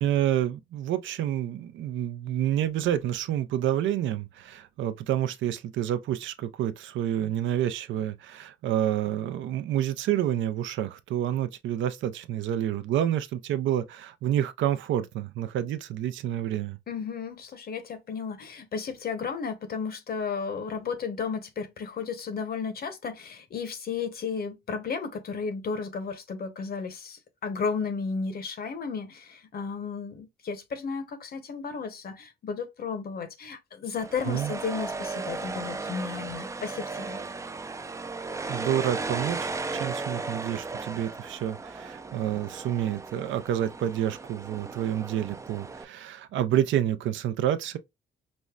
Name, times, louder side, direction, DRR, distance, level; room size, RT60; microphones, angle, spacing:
voice 1, 0.0-16.8 34.3-34.5 38.5-47.8, right 11 dB, 75° right, 0.5 m, -28 dB
voice 2, 16.9-37.2, left 5 dB, 50° left, 0.9 m, -33 dB
sound 1, 33.9-45.8, right 3 dB, 15° right, 0.3 m, -36 dB
5.2 x 2.1 x 2.3 m
cardioid pair, 90°, 20 cm